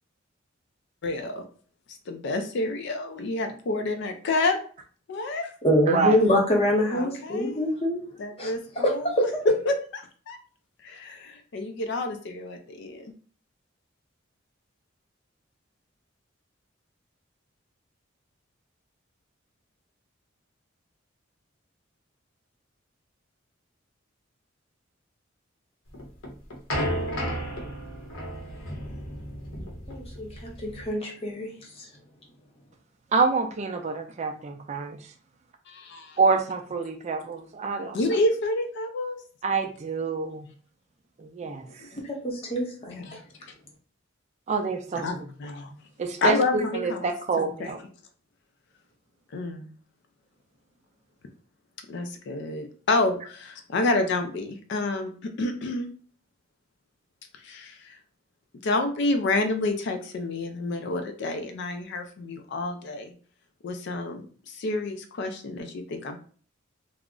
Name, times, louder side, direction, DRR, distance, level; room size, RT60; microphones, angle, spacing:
voice 1, 1.0-1.4 2.1-4.6 5.1-5.5 6.9-7.7 8.2-9.3 9.7-9.8 10.3-10.4 10.8-13.1 35.7-36.2 37.9-39.2 41.4-42.0 43.0-43.2 45.0-45.7 46.2-47.7 49.3-49.7 51.9-55.1 55.4-55.9 57.3-58.0 58.6-63.1 63.6-66.2, left 2 dB, 60° left, 6 dB, 0.4 m, -29 dB
voice 2, 5.6-8.0 8.4-9.2 29.9-30.3 30.6-31.5 31.8-31.9 42.1-43.0, equal, 30° left, 0 dB, 0.8 m, -25 dB
sound 1, 25.9-30.9, equal, 80° left, 0.8 m, -33 dB
voice 3, 33.1-35.0 36.2-38.0 39.4-40.5 41.2-41.6 44.5-45.1 46.0-47.8, right 4 dB, 35° right, 5 dB, 0.3 m, -26 dB
2.4 x 2.0 x 3.6 m, 0.44 s
head